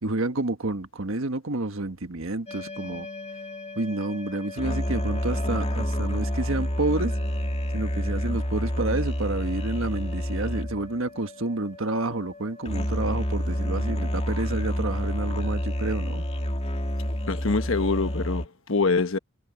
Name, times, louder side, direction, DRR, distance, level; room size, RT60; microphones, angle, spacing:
voice 1, 0.0-3.1 3.8-7.1 7.7-16.2, right 2 dB, 70° right, 1.5 m, -29 dB
sound 1, 2.5-18.5, equal, 30° left, 2.4 m, -29 dB
voice 2, 17.3-19.2, left 3 dB, 65° left, 1.2 m, -25 dB
head